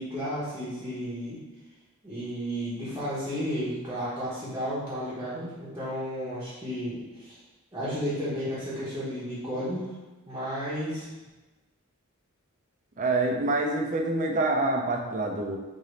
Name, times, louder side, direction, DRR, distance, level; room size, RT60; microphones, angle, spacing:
voice 1, 0.0-1.4 2.0-7.4 7.7-9.9 10.3-11.1, equal, 10° right, -11 dB, 0.9 m, -33 dB
voice 2, 13.0-15.6, right 2 dB, 35° right, 1 dB, 0.5 m, -26 dB
3.9 x 2.6 x 3.1 m, 1.1 s
head